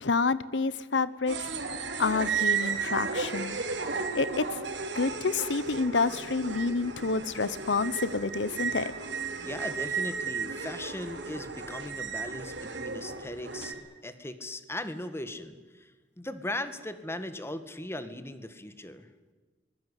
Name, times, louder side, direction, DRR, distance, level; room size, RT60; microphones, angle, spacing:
voice 1, 0.0-1.4 2.0-3.6 4.1-4.4 4.9-8.9, left 4 dB, 75° left, 16 dB, 0.9 m, -28 dB
sound 1, 1.3-13.7, right 5 dB, 70° right, 3.9 m, -34 dB
voice 2, 9.4-13.7 14.0-19.1, left 1 dB, 15° left, 10 dB, 1.8 m, -38 dB
24.0 x 21.0 x 8.3 m, 1.3 s
head